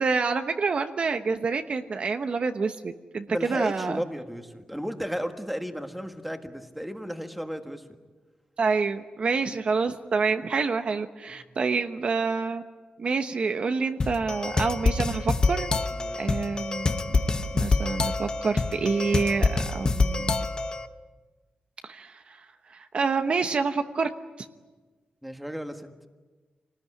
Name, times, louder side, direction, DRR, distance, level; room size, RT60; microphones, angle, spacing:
voice 1, 0.0-4.0 8.6-12.6 13.0-15.7 16.2-17.2 17.5-20.4 21.8-24.1 24.4-24.5, right 4 dB, 45° right, 7 dB, 1.0 m, -27 dB
voice 2, 3.3-7.8 16.0-16.3 20.4-20.6 25.2-25.9, equal, ahead, 6 dB, 1.6 m, -34 dB
sound 1, 14.0-20.8, left 3 dB, 30° left, 1.0 m, -26 dB
27.5 x 19.5 x 9.8 m, 1.3 s
wide cardioid pair, 160°, 3 cm